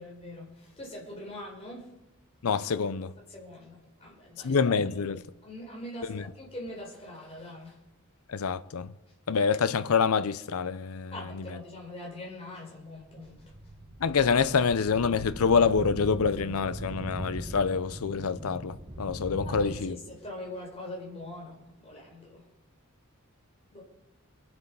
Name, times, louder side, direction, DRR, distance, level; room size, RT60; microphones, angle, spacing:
voice 1, 0.0-1.9 3.3-5.1 5.4-7.8 11.1-13.4 19.4-22.4 23.7-23.8, left 1 dB, 30° left, 4.4 m, -43 dB
voice 2, 2.4-3.1 4.4-5.2 6.1-6.2 8.3-8.9 9.3-11.5 14.0-20.0, left 5 dB, 85° left, 0.5 m, -26 dB
sound 1, 13.0-19.8, right 1 dB, 25° right, 1.1 m, -40 dB
24.0 x 7.9 x 5.4 m
head